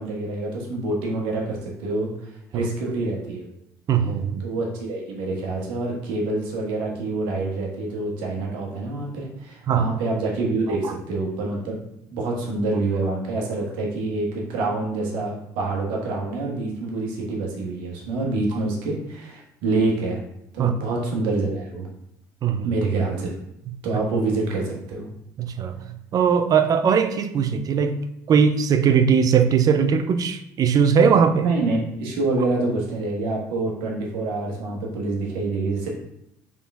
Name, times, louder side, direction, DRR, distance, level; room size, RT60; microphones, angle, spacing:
voice 1, 0.0-3.5 4.4-11.8 12.1-20.2 20.5-21.9 22.6-23.3 23.8-25.1 31.4-35.9, right 3 dB, 75° right, -1 dB, 1.3 m, -26 dB
voice 2, 3.9-4.4 9.7-9.9 20.6-20.7 22.4-22.7 25.4-25.8 26.1-28.0 28.3-31.5, right 7 dB, 45° right, 9 dB, 0.5 m, -19 dB
3.7 x 3.7 x 3.6 m, 0.78 s
hypercardioid pair, 70°, 9 cm